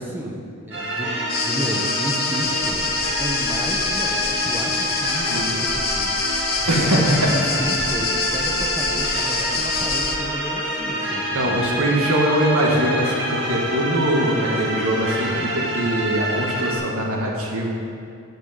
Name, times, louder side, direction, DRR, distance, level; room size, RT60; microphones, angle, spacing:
voice 1, 0.0-2.9 3.2-11.6, equal, 10° right, -1 dB, 1.0 m, -31 dB
sound 1, 0.7-16.8, right 1 dB, 50° right, 1.8 m, -27 dB
sound 2, 1.3-10.2, left 5 dB, 45° left, 0.8 m, -26 dB
voice 2, 6.7-7.3 11.3-17.7, right 1 dB, 80° right, -1 dB, 1.7 m, -22 dB
8.1 x 6.2 x 7.6 m, 2.4 s
head